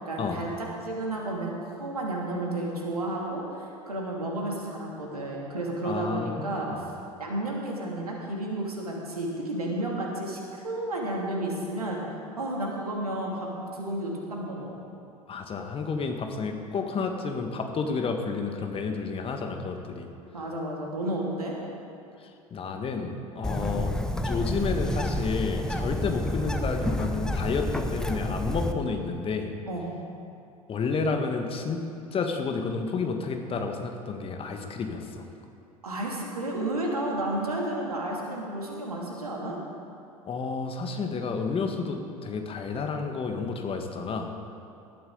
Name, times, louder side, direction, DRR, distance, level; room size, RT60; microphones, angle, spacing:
voice 1, 0.0-3.4 3.9-6.7 7.2-12.0 12.4-14.8 20.3-21.6 29.7-29.9 35.8-39.6, right 1 dB, 80° right, -2 dB, 2.8 m, -32 dB
voice 2, 5.8-6.8 15.3-20.1 22.2-23.9 24.2-29.5 30.7-31.8 32.1-35.3 40.2-44.3, left 4 dB, 30° left, 4 dB, 1.6 m, -31 dB
Bird, 23.4-28.7, left 1 dB, 5° left, 0.9 m, -29 dB
19.0 x 13.0 x 4.0 m, 2.8 s
figure-of-eight pair, 75°, 19 cm